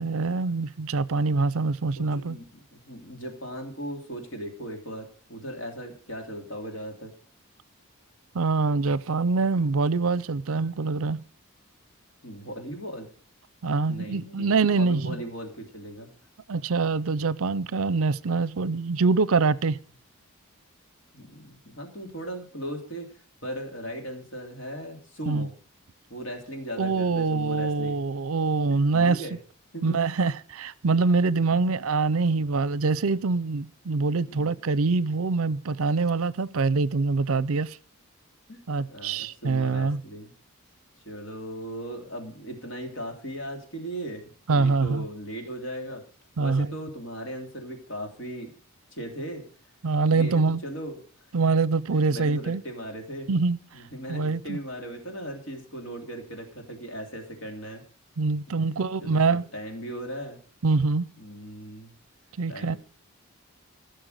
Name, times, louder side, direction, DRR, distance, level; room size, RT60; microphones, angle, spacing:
voice 1, 0.0-2.4 8.3-11.2 13.6-15.2 16.5-19.8 25.3-25.5 26.8-29.2 29.8-37.8 38.7-40.0 44.5-45.1 46.4-46.7 49.8-50.6 51.3-52.6 53.3-53.6 54.1-54.6 58.2-59.5 60.6-61.1 62.4-62.8, right 4 dB, 65° right, 0.5 m, -24 dB
voice 2, 2.0-7.1 12.2-13.1 13.9-16.1 21.1-25.5 26.1-28.0 28.7-29.4 29.7-30.0 31.5-31.7 34.3-34.5 37.3-37.5 38.5-38.6 38.8-40.3 41.0-46.0 46.4-48.5 48.9-49.4 50.1-51.3 51.9-53.3 53.7-57.8 58.6-60.4 61.2-61.9 62.5-62.8, right 1 dB, 60° left, 3.0 m, -38 dB
15.5 x 6.6 x 6.5 m
head